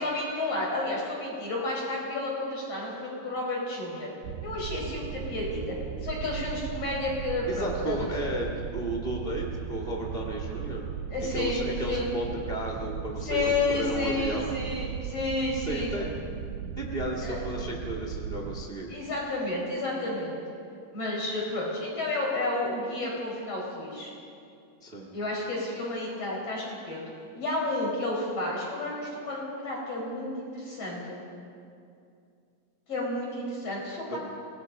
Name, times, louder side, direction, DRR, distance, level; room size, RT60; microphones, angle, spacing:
voice 1, 0.0-4.1 4.4-5.8 6.0-8.0 11.1-12.1 13.3-16.1 17.2-17.4 18.9-20.4 20.9-24.1 25.1-27.1 27.4-31.2 32.9-34.2, left 2 dB, 35° left, -3 dB, 5.9 m, -31 dB
sound 1, 4.2-18.7, right 8 dB, 85° right, 2.9 m, -37 dB
voice 2, 7.5-10.8 11.2-14.5 15.5-16.1 16.8-18.9 24.8-25.1 34.1-34.2, right 1 dB, 60° right, 1 dB, 0.5 m, -33 dB
26.5 x 18.5 x 5.3 m, 2.4 s
omnidirectional pair, 4.6 m